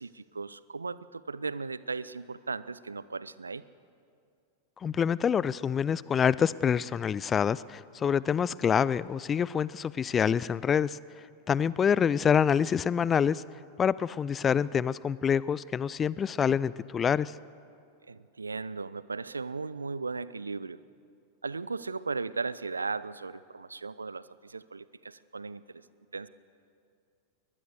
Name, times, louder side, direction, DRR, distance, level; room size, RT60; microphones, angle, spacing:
voice 1, 0.0-3.6 18.1-20.8 21.4-25.8 26.1-26.3, right 4 dB, 75° right, 18 dB, 0.5 m, -37 dB
voice 2, 4.8-11.0 11.5-13.4 13.8-17.3, left 7 dB, 20° left, 21 dB, 0.4 m, -26 dB
22.0 x 20.0 x 6.8 m, 2.4 s
figure-of-eight pair, 90°, 0 cm